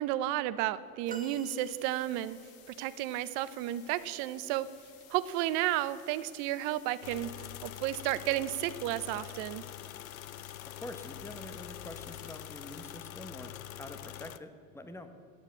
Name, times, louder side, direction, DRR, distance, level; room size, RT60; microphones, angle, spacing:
voice 1, 0.0-2.4 2.8-4.7 5.1-7.3 7.6-9.6, right 14 dB, 60° right, 16 dB, 0.7 m, -32 dB
sound 1, 1.1-13.0, left 8 dB, 55° left, 1.6 m, -57 dB
sound 2, 1.1-2.5 4.9-5.1 6.4-6.5, right 3 dB, 20° right, 0.9 m, -47 dB
sound 3, 7.0-14.4, left 13 dB, 90° left, 0.5 m, -45 dB
voice 2, 10.8-15.1, left 1 dB, 5° left, 8 dB, 1.0 m, -46 dB
11.5 x 7.3 x 8.3 m, 2.3 s
hypercardioid pair, 75°, 40 cm